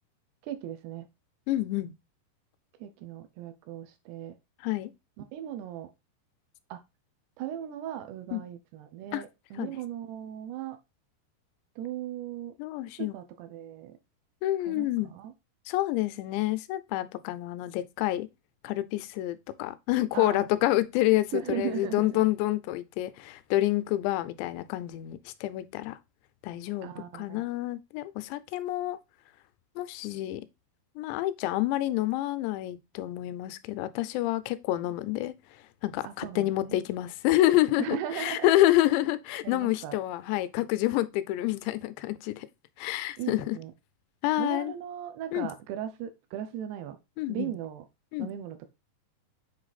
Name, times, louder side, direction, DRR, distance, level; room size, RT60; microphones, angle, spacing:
voice 1, 0.4-1.1 2.8-4.4 5.2-5.9 6.7-6.8 7.4-10.8 11.8-12.5 13.0-14.0 14.6-15.3 20.1-20.5 21.3-22.3 26.8-27.5 36.0-36.8 37.8-38.5 39.4-40.0 43.2-43.7 44.4-47.0 47.3-47.9 48.2-48.7, right 11 dB, 80° right, 2.7 m, -37 dB
voice 2, 1.5-1.9 4.6-4.9 8.3-8.4 9.1-9.2 9.6-9.7 12.6-13.1 14.4-15.1 15.7-18.3 18.6-26.0 26.4-29.0 29.8-30.4 31.0-35.3 35.8-42.5 42.8-43.6 44.2-44.7 45.3-45.5 47.2-47.5 48.1-48.3, left 15 dB, 90° left, 2.8 m, -28 dB
7.4 x 3.2 x 4.0 m
omnidirectional pair, 4.9 m